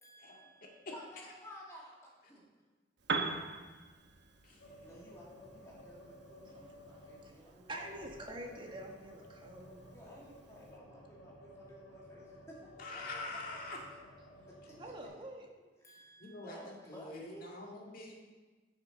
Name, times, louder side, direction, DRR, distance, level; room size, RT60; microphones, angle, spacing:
voice 1, 0.0-2.4 4.8-7.8 9.9-13.0 14.6-15.1 15.8-18.0, equal, 15° left, -4 dB, 2.2 m, -55 dB
Piano, 3.0-10.8, right 4 dB, 65° right, 1.0 m, -44 dB
sound 1, 4.6-7.5 7.7-15.1, left 1 dB, 90° left, 1.7 m, -55 dB
voice 2, 6.4-9.9 14.8-15.5, right 1 dB, 25° right, 1 dB, 1.4 m, -47 dB
voice 3, 12.8-13.8 16.2-18.2, left 2 dB, 50° left, -1 dB, 2.0 m, -45 dB
9.6 x 6.9 x 5.3 m, 1.3 s
head